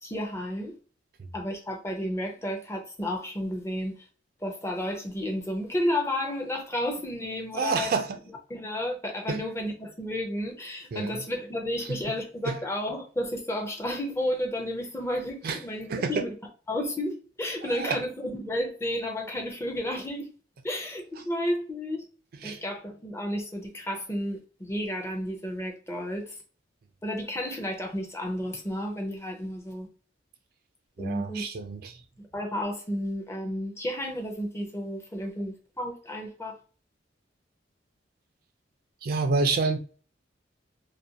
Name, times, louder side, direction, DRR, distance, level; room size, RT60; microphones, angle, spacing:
voice 1, 0.0-0.7 1.3-4.0 4.4-7.9 8.5-16.3 16.7-20.3 20.6-22.0 22.4-26.3 27.0-29.9 31.0-31.4 32.2-36.5, left 1 dB, 15° left, 0.5 m, -32 dB
voice 2, 7.5-8.2 9.3-9.4 10.9-11.2 11.9-12.0 12.4-12.6 15.4-15.6 15.9-16.1 17.6-18.0 21.2-21.3 22.4-22.6 31.0-32.0 39.0-39.8, right 4 dB, 50° right, 0.3 m, -28 dB
2.4 x 2.2 x 2.7 m
head